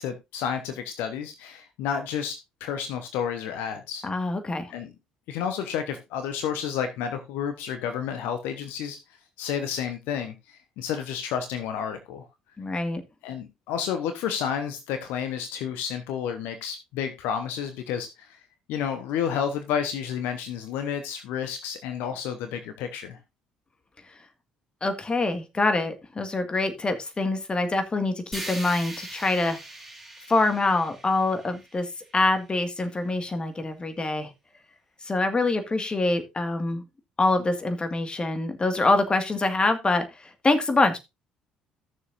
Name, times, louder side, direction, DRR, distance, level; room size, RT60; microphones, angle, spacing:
voice 1, 0.0-4.0 4.7-4.9 5.3-9.0 9.4-12.3 13.2-18.4 18.7-23.2, left 8 dB, 65° left, 8 dB, 1.0 m, -31 dB
voice 2, 4.0-4.7 12.6-13.0 24.8-29.6 30.3-31.9 32.1-34.3 35.0-36.8 37.2-41.0, left 2 dB, 25° left, 8 dB, 1.8 m, -25 dB
sound 1, 28.3-32.4, right 1 dB, 5° right, 4.3 m, -41 dB
15.5 x 6.8 x 2.6 m, 0.24 s
figure-of-eight pair, 50°, 4 cm